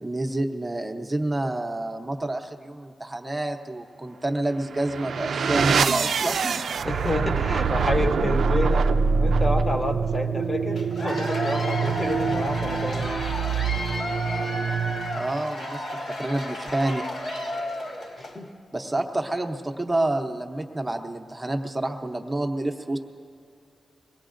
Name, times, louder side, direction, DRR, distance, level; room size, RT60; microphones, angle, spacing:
voice 1, 0.0-6.6 15.1-15.8 16.2-17.0 18.7-23.0, right 2 dB, 15° right, 4 dB, 0.7 m, -28 dB
sound 1, 4.6-15.3, right 5 dB, 70° right, 0.4 m, -25 dB
voice 2, 6.8-8.9 9.2-13.3 18.2-18.5, left 1 dB, 20° left, 3 dB, 0.9 m, -29 dB
Cheering / Applause / Crowd, 10.8-18.4, left 1 dB, 70° left, 1.8 m, -32 dB
23.0 x 18.0 x 2.5 m, 2.4 s
wide cardioid pair, 150°, 0 cm